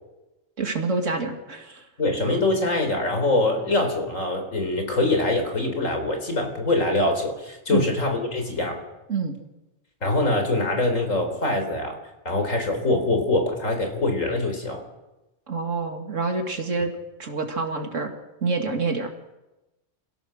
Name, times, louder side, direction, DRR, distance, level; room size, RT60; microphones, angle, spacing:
voice 1, 0.6-1.8 7.7-7.9 9.1-9.4 15.5-16.9 17.2-18.1 18.4-19.1, right 4 dB, 75° right, 4 dB, 2.5 m, -27 dB
voice 2, 2.0-8.8 10.0-12.0 12.2-14.8, left 2 dB, 90° left, 4 dB, 4.4 m, -24 dB
28.0 x 16.0 x 6.5 m, 1.0 s
omnidirectional pair, 1.3 m